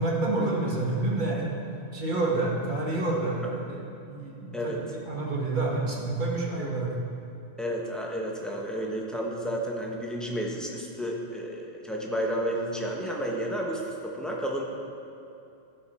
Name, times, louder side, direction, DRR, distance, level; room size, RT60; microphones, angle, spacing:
voice 1, 0.0-1.5 1.9-6.9, right 2 dB, 45° right, -3 dB, 1.6 m, -28 dB
voice 2, 7.6-14.7, equal, ahead, -2 dB, 1.0 m, -31 dB
15.0 x 5.1 x 4.2 m, 2.7 s
omnidirectional pair, 1.1 m